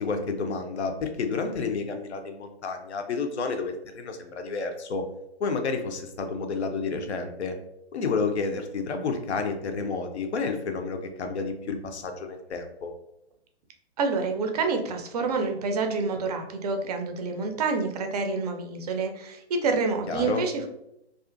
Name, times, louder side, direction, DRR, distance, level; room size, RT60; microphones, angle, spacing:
voice 1, 0.0-5.0 5.4-7.5 7.9-12.9 20.1-20.4, left 4 dB, 80° left, 5 dB, 0.5 m, -30 dB
voice 2, 14.0-20.7, right 4 dB, 40° right, 5 dB, 0.4 m, -28 dB
2.4 x 2.3 x 2.4 m, 0.80 s
figure-of-eight pair, 125°, 33 cm